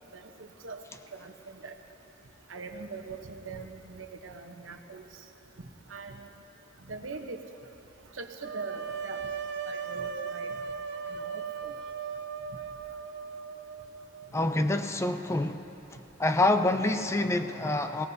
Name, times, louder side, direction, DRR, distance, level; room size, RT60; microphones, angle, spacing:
voice 1, 2.5-5.0 5.9-6.3 6.9-7.4 8.2-9.2 9.7-10.5 11.1-11.7, right 4 dB, 85° right, 4 dB, 1.0 m, -41 dB
sound 1, 8.4-14.3, right 6 dB, 60° right, 0.6 m, -37 dB
voice 2, 14.3-15.7 16.2-18.1, left 2 dB, 15° left, 8 dB, 0.5 m, -26 dB
22.5 x 18.5 x 2.8 m, 3.0 s
head